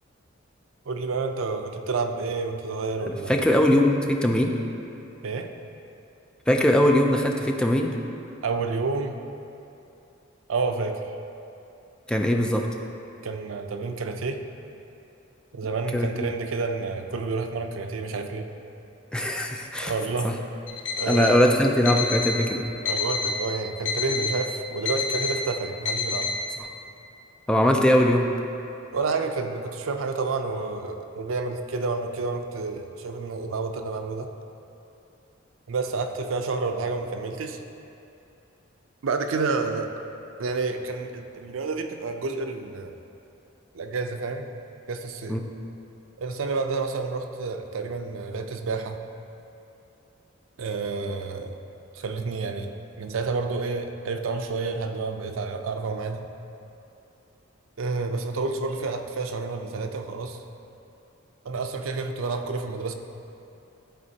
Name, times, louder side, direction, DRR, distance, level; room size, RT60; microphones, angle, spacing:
voice 1, 0.9-3.4 5.2-5.5 8.4-9.2 10.5-11.1 13.2-14.4 15.5-18.5 19.8-20.3 21.0-21.6 22.8-26.3 28.9-34.3 35.7-37.6 39.0-39.9 40.4-43.0 43.7-44.5 44.9-45.4 46.2-49.0 50.6-51.6 51.9-52.7 53.0-56.2 57.8-60.4 61.4-62.9, right 4 dB, 85° right, 6 dB, 0.5 m, -29 dB
voice 2, 3.1-4.5 6.5-7.9 12.1-12.7 15.9-16.3 19.1-19.9 20.2-20.3 21.1-22.6 27.5-28.3 45.3-45.4, left 1 dB, 5° left, 1 dB, 0.4 m, -21 dB
Alarm, 20.7-21.4 21.9-22.4 22.9-23.4 23.9-24.4 24.9-25.4 25.9-26.4, left 5 dB, 70° left, 0.8 m, -28 dB
12.5 x 4.2 x 2.8 m, 2.7 s
head